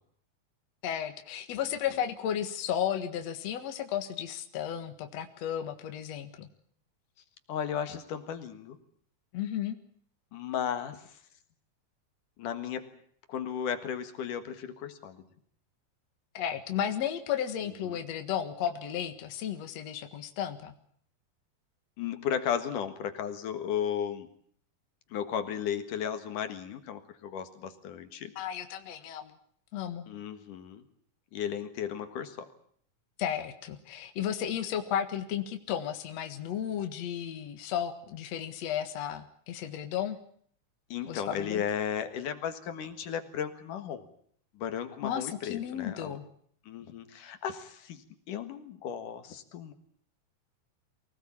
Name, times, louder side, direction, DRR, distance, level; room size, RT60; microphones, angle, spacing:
voice 1, 0.8-6.5 9.3-9.8 16.3-20.7 28.4-29.4 29.7-30.1 33.2-40.2 41.0-41.6 45.0-46.2, left 9 dB, 60° left, 7 dB, 2.6 m, -34 dB
voice 2, 7.5-8.8 10.3-11.2 12.4-12.9 13.3-15.2 17.6-18.0 22.0-24.3 25.1-28.3 30.1-30.8 31.3-32.5 40.9-44.0 44.5-46.2 46.7-49.7, left 8 dB, 75° left, 9 dB, 3.2 m, -35 dB
24.5 x 18.5 x 8.7 m, 0.62 s
omnidirectional pair, 3.7 m